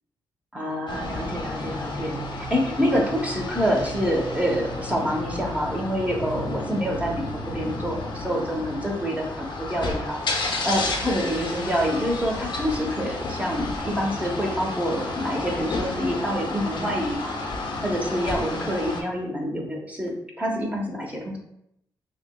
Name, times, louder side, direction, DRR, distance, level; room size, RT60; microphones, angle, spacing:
voice 1, 0.5-21.4, equal, 15° right, -1 dB, 0.9 m, -27 dB
sound 1, 0.9-19.0, left 2 dB, 70° left, 0.7 m, -31 dB
5.8 x 2.1 x 2.2 m, 0.76 s
cardioid pair, 75°, 8 cm